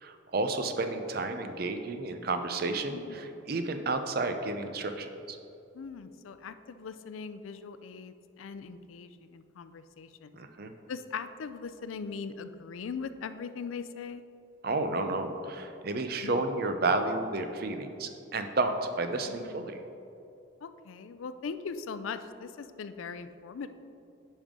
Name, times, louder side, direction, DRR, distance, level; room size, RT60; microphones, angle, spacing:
voice 1, 0.0-5.4 10.4-10.7 14.6-19.8, right 2 dB, 50° right, 7 dB, 0.5 m, -31 dB
voice 2, 2.9-3.5 5.7-10.4 10.9-14.2 16.2-16.4 19.2-19.8 20.6-23.7, left 5 dB, 85° left, 11 dB, 0.4 m, -40 dB
10.0 x 5.4 x 3.7 m, 2.7 s
head